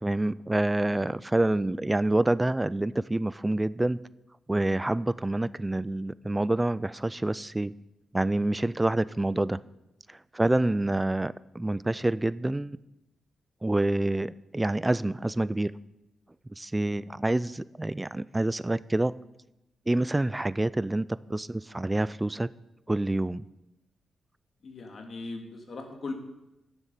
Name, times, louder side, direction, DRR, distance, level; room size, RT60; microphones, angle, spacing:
voice 1, 0.0-4.0 4.5-7.7 8.1-9.6 10.1-12.8 13.6-15.7 16.6-19.1 19.9-22.5 22.9-23.5, right 2 dB, 15° right, 18 dB, 0.4 m, -27 dB
voice 2, 24.6-26.1, left 3 dB, 55° left, 3 dB, 2.3 m, -39 dB
10.5 x 7.2 x 8.2 m, 0.91 s
cardioid pair, 65°, 0 cm